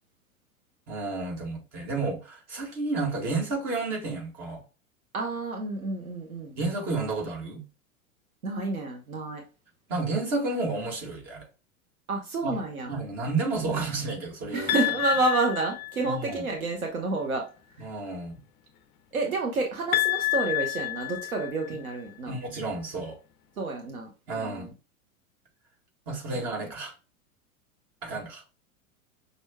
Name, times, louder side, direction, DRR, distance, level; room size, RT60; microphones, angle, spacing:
voice 1, 0.9-4.6 6.6-7.6 9.9-11.5 12.4-12.5 12.9-14.7 16.0-16.4 17.8-18.4 22.3-23.2 24.3-24.7 26.1-26.9 28.0-28.4, right 3 dB, 40° right, 2.0 m, -31 dB
voice 2, 5.1-6.5 8.4-9.4 12.1-12.9 14.5-17.4 19.1-22.3 23.6-24.7 26.3-26.5, right 3 dB, 80° right, 1.0 m, -29 dB
sound 1, 14.7-16.3 19.9-21.9, left 18 dB, 25° left, 0.4 m, -29 dB
6.1 x 2.6 x 2.2 m
figure-of-eight pair, 90°, 42 cm